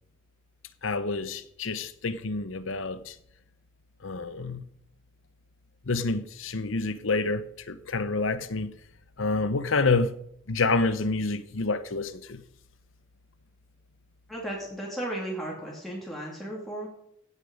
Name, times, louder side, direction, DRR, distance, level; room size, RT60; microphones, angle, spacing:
voice 1, 0.8-3.1 4.0-4.6 5.9-8.7 9.2-10.1 10.5-12.4, left 3 dB, 75° left, 0.8 m, -28 dB
voice 2, 14.3-16.9, right 1 dB, ahead, 2.7 m, -35 dB
16.5 x 8.3 x 5.3 m
head